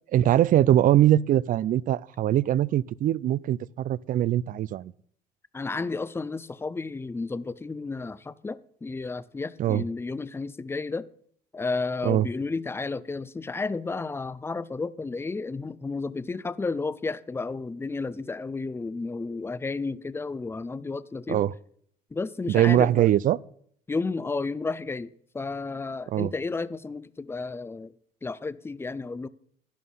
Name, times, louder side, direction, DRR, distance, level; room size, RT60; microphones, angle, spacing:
voice 1, 0.1-4.9 9.6-9.9 12.0-12.3 21.3-21.5 22.5-23.4 26.1-26.3, right 12 dB, 55° right, 0.4 m, -22 dB
voice 2, 5.5-11.0 11.5-21.4 22.1-23.1 23.9-27.9 28.2-29.3, left 3 dB, 15° left, 0.6 m, -32 dB
11.5 x 11.0 x 5.6 m
cardioid pair, 110°, 17 cm